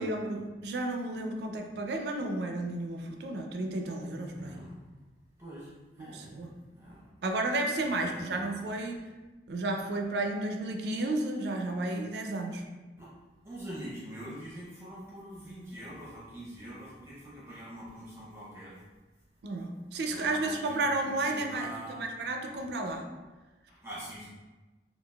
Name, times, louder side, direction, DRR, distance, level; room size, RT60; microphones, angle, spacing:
voice 1, 0.0-4.7 6.0-6.5 7.2-9.0 9.5-12.7 19.4-23.0, right 2 dB, 70° right, 3 dB, 0.4 m, -32 dB
voice 2, 4.3-4.7 5.4-5.7 6.0-6.4 6.8-7.1 8.0-8.6 13.0-13.1 13.4-18.8 20.1-22.0 23.7-24.3, right 1 dB, 15° right, -7 dB, 0.7 m, -44 dB
3.7 x 2.3 x 2.3 m, 1.2 s
head